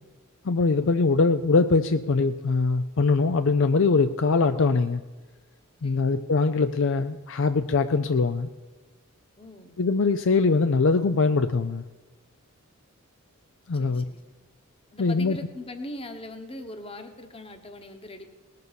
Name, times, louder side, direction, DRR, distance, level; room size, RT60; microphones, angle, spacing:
voice 1, 0.4-5.0 5.8-8.5 9.8-11.8 13.7-14.0 15.0-15.4, left 4 dB, 55° left, 9 dB, 0.5 m, -22 dB
voice 2, 5.8-6.2 9.4-9.8 13.7-14.2 14.9-18.3, left 1 dB, 25° left, 7 dB, 1.2 m, -41 dB
19.0 x 6.7 x 6.9 m, 1.3 s
head